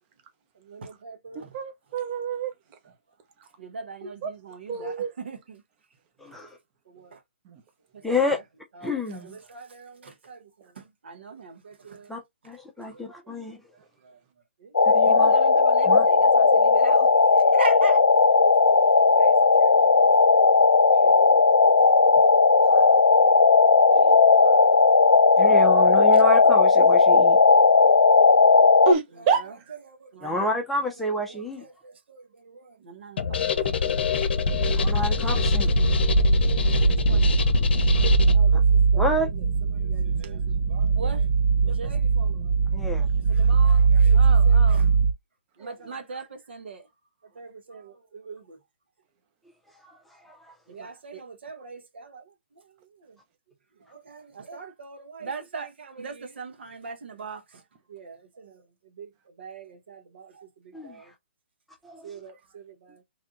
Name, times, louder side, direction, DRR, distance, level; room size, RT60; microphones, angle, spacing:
voice 1, 0.5-1.6 1.9-2.0 2.8-2.9 3.6-5.6 6.3-6.4 6.9-7.2 7.9-8.4 8.7-12.1 12.8-13.4 13.7-14.2 14.6-14.8 15.0-17.1 17.3-18.2 19.2-20.4 21.0-21.8 24.6-24.9 26.1-26.2 28.6-28.7 29.1-29.6 29.8-34.3 34.6-34.8 35.4-35.5 36.2-37.7 38.0-39.5 39.7-41.3 41.6-42.6 43.3-45.0 45.6-46.9 47.3-48.6 50.7-53.2 53.8-57.6 57.9-61.1 62.0-63.0, right 4 dB, 65° right, 1.2 m, -42 dB
voice 2, 1.3-2.5 4.2-4.3 4.7-5.1 28.9-29.4, right 4 dB, 30° right, 1.0 m, -26 dB
voice 3, 6.2-6.6 8.0-8.4 8.8-9.4 12.1-13.6 14.8-15.3 15.9-16.1 20.9-21.1 22.6-22.9 23.9-24.1 24.4-24.5 25.4-27.4 30.2-31.6 34.7-35.7 39.0-39.3 42.7-43.1 49.8-50.5 60.7-61.1 61.8-62.2, left 1 dB, ahead, 0.7 m, -30 dB
sound 1, 14.7-28.9, left 4 dB, 90° left, 0.5 m, -17 dB
sound 2, 33.2-38.4, left 4 dB, 60° left, 0.8 m, -24 dB
sound 3, 34.5-45.1, right 5 dB, 50° right, 0.6 m, -21 dB
3.4 x 2.4 x 3.7 m
hypercardioid pair, 140°, 6 cm